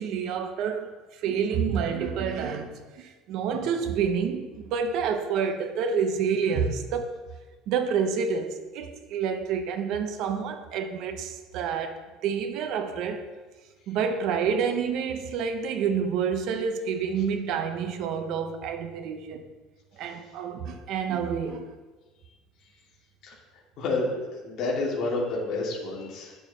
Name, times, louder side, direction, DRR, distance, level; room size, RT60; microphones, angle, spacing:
voice 1, 0.0-7.1 7.7-13.3 13.9-19.5 20.0-21.7, right 6 dB, 55° right, 6 dB, 1.0 m, -28 dB
voice 2, 23.8-26.4, left 2 dB, 45° left, -4 dB, 2.6 m, -29 dB
9.6 x 7.0 x 4.3 m, 1.3 s
cardioid pair, 160°, 0 cm